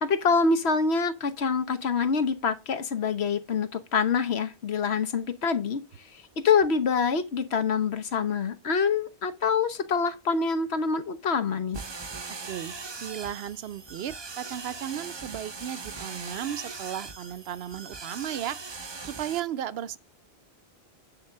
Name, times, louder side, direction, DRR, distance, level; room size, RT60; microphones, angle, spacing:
voice 1, 0.0-5.8 6.1-11.8, left 5 dB, 75° left, 1.2 m, -26 dB
sound 1, 11.7-19.4, right 4 dB, 30° right, 0.6 m, -40 dB
voice 2, 12.5-18.6 19.0-20.0, right 10 dB, 70° right, 0.8 m, -35 dB
9.9 x 3.8 x 6.5 m
omnidirectional pair, 1.1 m